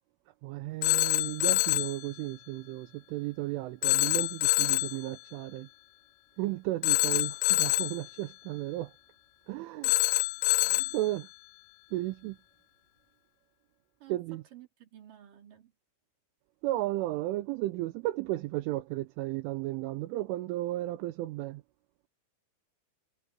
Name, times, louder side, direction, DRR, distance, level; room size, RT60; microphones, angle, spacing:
voice 1, 0.4-5.7 6.4-8.9 9.5-9.9 10.7-11.3 11.9-12.4 14.1-14.4 16.6-21.6, right 17 dB, 80° right, 3.2 m, -34 dB
Telephone, 0.8-2.0 3.8-5.0 6.8-8.0 9.8-11.0, left 19 dB, 85° left, 3.4 m, -26 dB
voice 2, 10.6-11.1 14.0-15.7, right 11 dB, 45° right, 5.0 m, -54 dB
omnidirectional pair, 5.9 m